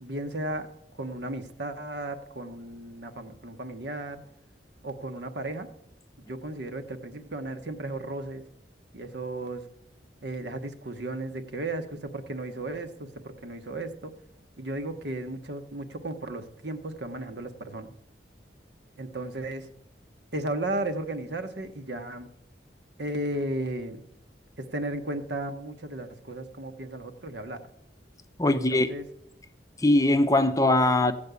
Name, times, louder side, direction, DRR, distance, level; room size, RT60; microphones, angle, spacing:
voice 1, 0.0-0.7 1.0-4.2 4.8-5.7 6.3-8.4 8.9-9.7 10.2-13.1 13.4-14.1 14.6-17.9 19.0-19.7 20.3-22.3 23.0-24.0 24.6-27.6 28.5-29.0, right 1 dB, 65° right, 1.1 m, -34 dB
voice 2, 28.4-28.9 29.8-31.1, left 1 dB, 20° left, 0.6 m, -21 dB
15.5 x 5.3 x 8.2 m
head